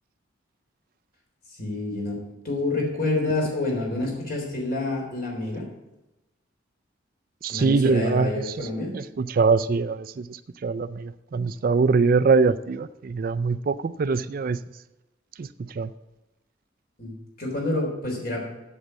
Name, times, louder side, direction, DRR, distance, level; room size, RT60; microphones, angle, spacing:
voice 1, 1.6-2.2 2.4-5.7 7.5-8.9 17.0-18.4, left 2 dB, 50° left, 3.5 m, -28 dB
voice 2, 7.4-8.7 8.9-14.6 15.4-15.9, right 4 dB, 45° right, 0.3 m, -23 dB
8.1 x 7.3 x 7.5 m
head